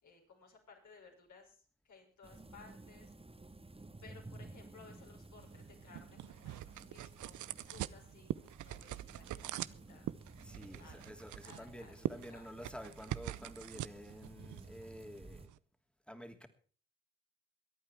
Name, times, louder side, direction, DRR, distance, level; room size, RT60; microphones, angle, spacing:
voice 1, 0.0-3.1 4.0-10.1 10.6-12.5, left 5 dB, 65° left, 0 dB, 6.3 m, -60 dB
sound 1, 2.2-15.5, right 2 dB, 15° right, 1.8 m, -55 dB
sound 2, 5.4-15.6, right 14 dB, 65° right, 0.7 m, -44 dB
voice 2, 10.4-15.5 16.1-16.5, equal, 5° left, 7 dB, 2.9 m, -50 dB
23.5 x 8.9 x 4.6 m, 0.41 s
hypercardioid pair, 45°, 32 cm